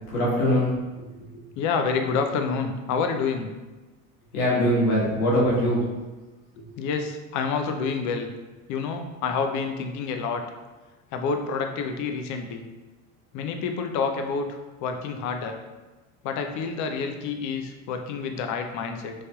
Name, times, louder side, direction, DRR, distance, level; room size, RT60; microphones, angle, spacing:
voice 1, 0.1-0.7 4.3-5.8 6.6-6.7, equal, 80° left, -5 dB, 1.3 m, -22 dB
voice 2, 1.6-3.5 6.8-8.3 8.7-10.4 11.1-12.6 13.3-15.6 16.2-19.1, left 5 dB, 45° left, 5 dB, 0.4 m, -28 dB
3.2 x 2.7 x 2.3 m, 1.2 s
hypercardioid pair, 95°, 43 cm